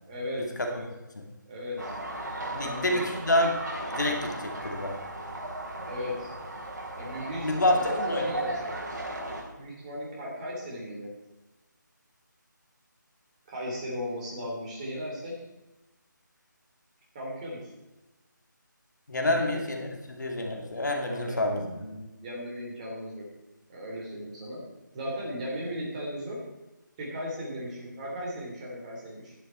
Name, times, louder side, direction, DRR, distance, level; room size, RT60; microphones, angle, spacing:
voice 1, 0.1-0.9 1.4-1.9 2.5-3.1 5.9-6.3 7.0-8.7 9.6-11.1 13.5-15.4 17.1-17.7 19.2-19.5 21.0-23.3 23.7-24.6 24.9-26.4 27.0-29.3, equal, 20° right, -4 dB, 3.1 m, -36 dB
sound 1, 1.8-9.4, right 1 dB, 55° right, 3.6 m, -36 dB
voice 2, 2.5-3.6 3.9-5.0 7.4-8.3 19.1-21.6, left 1 dB, 60° left, 2 dB, 2.4 m, -28 dB
11.0 x 11.0 x 4.4 m, 1.0 s
figure-of-eight pair, 160°, 11 cm